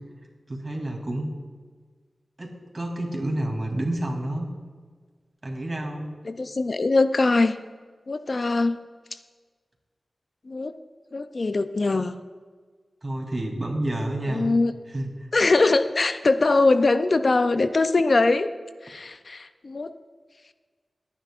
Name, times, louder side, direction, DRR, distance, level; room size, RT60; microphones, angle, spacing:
voice 1, 0.5-1.3 2.4-4.5 5.4-6.1 13.0-14.5 14.9-15.3, right 1 dB, 30° right, 0 dB, 2.9 m, -29 dB
voice 2, 6.2-7.6 8.1-8.8 9.1-9.2 10.5-10.7 11.1-12.2 14.3-14.7 15.3-18.5 18.8-19.9, left 3 dB, 55° left, 10 dB, 0.5 m, -22 dB
23.0 x 10.0 x 2.5 m, 1.5 s
wide cardioid pair, 75°, 0 cm